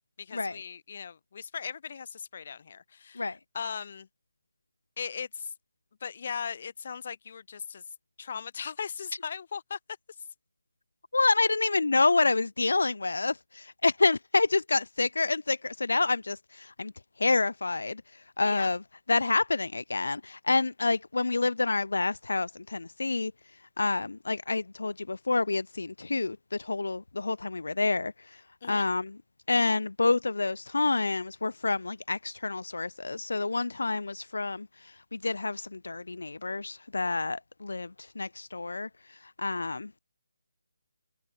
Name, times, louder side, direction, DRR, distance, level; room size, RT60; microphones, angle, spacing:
voice 1, 0.2-4.1 5.0-5.5 6.0-7.8 8.2-9.8 18.4-18.7 28.6-28.9, left 6 dB, 35° left, 6.9 m, -38 dB
voice 2, 11.1-16.9 17.2-18.0 18.4-18.8 19.1-23.3 23.8-28.1 28.7-29.2 29.5-34.7 35.1-37.9 38.2-38.9 39.4-40.0, left 3 dB, 85° left, 0.5 m, -28 dB
hypercardioid pair, 175°, 0 cm